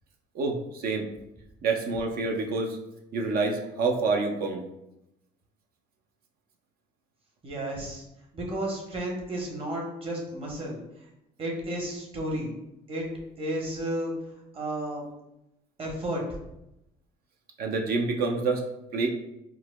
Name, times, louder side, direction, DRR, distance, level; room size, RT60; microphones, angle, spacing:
voice 1, 0.3-1.1 1.6-2.8 3.1-4.6 17.6-18.6 18.9-19.1, right 3 dB, 65° right, 3 dB, 0.5 m, -27 dB
voice 2, 7.4-8.0 8.3-10.8 11.4-12.6 12.9-13.1 13.4-14.1 14.5-15.0 15.8-16.2, right 1 dB, 35° right, -2 dB, 1.0 m, -32 dB
4.6 x 2.1 x 2.2 m, 0.86 s
cardioid pair, 110°, 17 cm